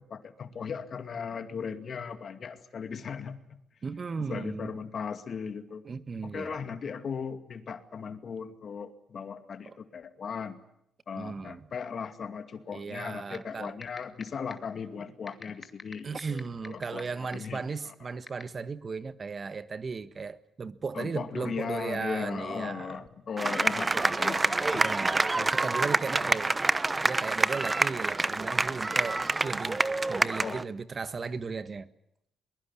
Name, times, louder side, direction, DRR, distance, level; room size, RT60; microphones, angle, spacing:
voice 1, 0.0-3.6 4.2-5.8 6.2-10.6 11.1-17.9 20.9-25.0 26.2-26.3 30.2-30.6, left 6 dB, 50° left, 2.3 m, -38 dB
voice 2, 3.8-4.7 5.8-6.6 9.6-9.7 11.1-11.7 12.7-13.7 16.0-23.0 23.9-26.6 27.0-31.9, right 5 dB, 40° right, 1.4 m, -36 dB
sound 1, 13.3-13.4 13.8-14.2 14.5-14.6 15.3-17.0 17.3-17.4 18.3-18.4, left 2 dB, 20° left, 2.5 m, -40 dB
sound 2, 23.4-30.6, right 3 dB, 20° right, 1.0 m, -27 dB
22.5 x 22.0 x 9.9 m
cardioid pair, 90°, 0 cm